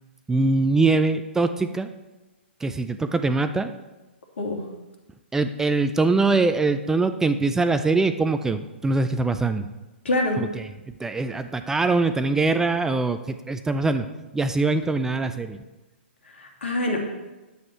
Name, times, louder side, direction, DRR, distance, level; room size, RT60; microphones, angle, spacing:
voice 1, 0.3-1.9 2.6-3.7 5.3-9.7 10.4-10.7 11.0-14.1 14.3-15.6, right 3 dB, 10° right, 9 dB, 0.4 m, -23 dB
voice 2, 10.0-10.4 16.2-17.0, left 1 dB, 80° left, 0 dB, 2.6 m, -25 dB
9.9 x 8.0 x 4.5 m, 1.1 s
hypercardioid pair, 135°, 6 cm